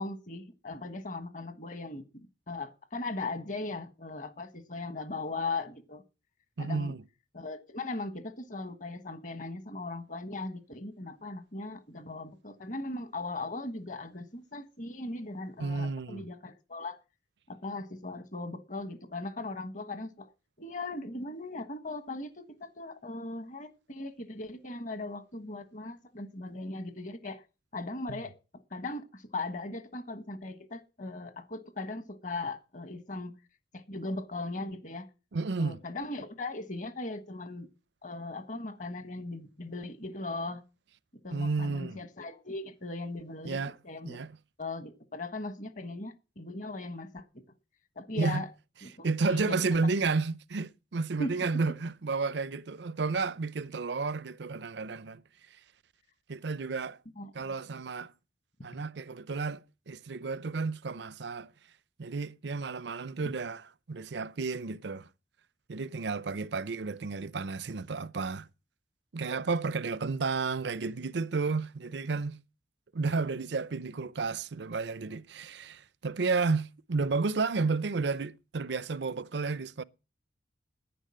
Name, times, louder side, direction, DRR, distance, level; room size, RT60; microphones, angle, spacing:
voice 1, 0.0-6.0 6.6-6.9 7.3-17.0 17.5-20.3 20.6-27.4 27.7-28.3 28.7-33.3 33.7-35.1 35.6-37.7 38.0-40.6 41.2-44.2 44.6-47.4 47.9-48.5 48.8-49.6 51.2-51.3 57.1-57.5 63.2-63.3, left 2 dB, 45° left, 1.3 m, -38 dB
voice 2, 6.6-7.0 15.6-16.3 28.1-28.2 35.3-35.8 41.3-42.0 43.4-43.7 44.0-44.3 48.2-48.4 49.0-55.2 56.3-57.0 57.3-58.1 58.6-61.5 62.0-63.6 63.9-65.1 65.7-68.5 69.1-72.4 72.9-79.8, right 4 dB, 70° right, 0.6 m, -32 dB
10.0 x 10.0 x 7.5 m
head